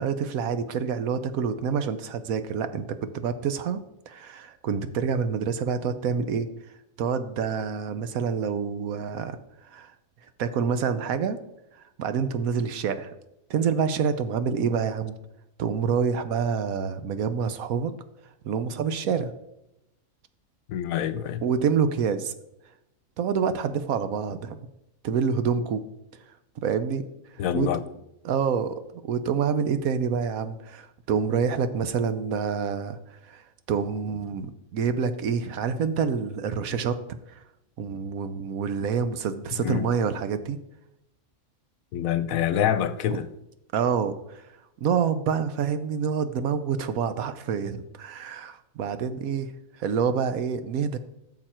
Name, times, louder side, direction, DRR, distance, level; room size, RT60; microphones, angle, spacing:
voice 1, 0.0-6.5 7.0-9.4 9.7-9.9 10.4-11.4 12.0-13.2 13.5-15.1 15.6-17.9 18.4-19.3 21.4-22.3 23.2-24.7 25.0-25.8 26.6-27.0 27.5-27.7 28.2-33.4 33.7-37.0 37.3-37.4 37.8-40.6 43.1-43.2 43.7-44.4 44.8-49.5 49.8-51.0, right 6 dB, 75° right, 1.2 m, -27 dB
voice 2, 20.7-21.4 27.4-27.8 39.6-39.9 41.9-43.3, left 10 dB, 75° left, 1.0 m, -26 dB
13.5 x 6.4 x 4.4 m
omnidirectional pair, 1.5 m